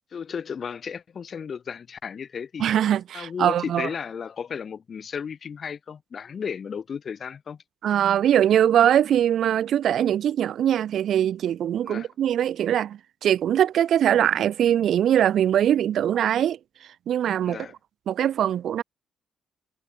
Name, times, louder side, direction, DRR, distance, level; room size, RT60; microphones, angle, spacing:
voice 1, 0.1-2.7 3.1-7.6 11.8-12.1 17.5-17.7, left 6 dB, 50° left, 3.4 m, -34 dB
voice 2, 2.6-3.9 7.8-16.6 17.1-17.7 18.1-18.8, right 10 dB, 70° right, 2.3 m, -22 dB
cardioid pair, 90°, 0 cm